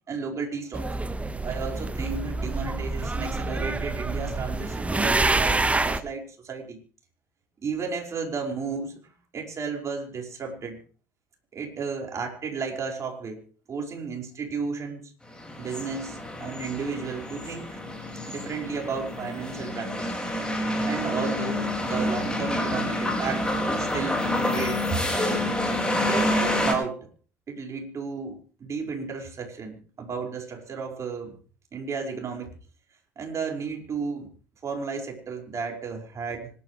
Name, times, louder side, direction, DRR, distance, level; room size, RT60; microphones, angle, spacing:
voice 1, 0.1-0.9 1.4-6.8 7.6-9.0 9.3-10.8 11.5-15.1 15.6-17.8 18.3-20.1 20.9-25.0 26.0-27.1 27.5-31.4 31.7-32.5 33.2-34.3 34.6-36.5, right 5 dB, 40° right, 2 dB, 5.2 m, -33 dB
sound 1, 0.7-6.0, right 2 dB, 15° right, 1.3 m, -27 dB
sound 2, 15.3-26.7, left 1 dB, 10° left, 5.3 m, -28 dB
25.5 x 12.5 x 3.2 m, 0.39 s
hypercardioid pair, 65°, 8 cm